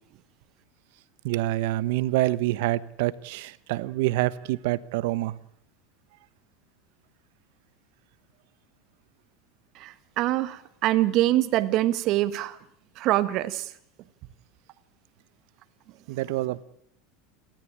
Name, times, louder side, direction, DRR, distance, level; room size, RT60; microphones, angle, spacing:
voice 1, 1.2-5.4 16.1-16.6, right 17 dB, 70° right, 1.1 m, -26 dB
voice 2, 9.8-12.6 13.0-13.7, right 15 dB, 50° right, 1.5 m, -24 dB
29.0 x 13.5 x 8.8 m
supercardioid pair, 135°, 0 cm